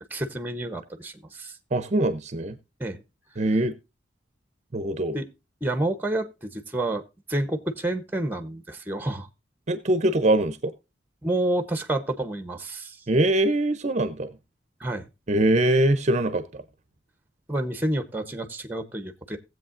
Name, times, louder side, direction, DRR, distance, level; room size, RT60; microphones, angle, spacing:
voice 1, 0.1-1.5 2.8-3.0 5.1-5.2 5.6-7.0 7.3-9.3 11.2-13.0 14.8-15.0 17.5-19.4, right 1 dB, 10° right, 9 dB, 0.8 m, -29 dB
voice 2, 1.7-2.6 3.4-3.7 4.7-5.2 9.7-10.7 13.1-14.3 15.3-16.6, right 1 dB, 40° right, 11 dB, 0.6 m, -23 dB
18.0 x 7.8 x 2.5 m, 0.27 s
head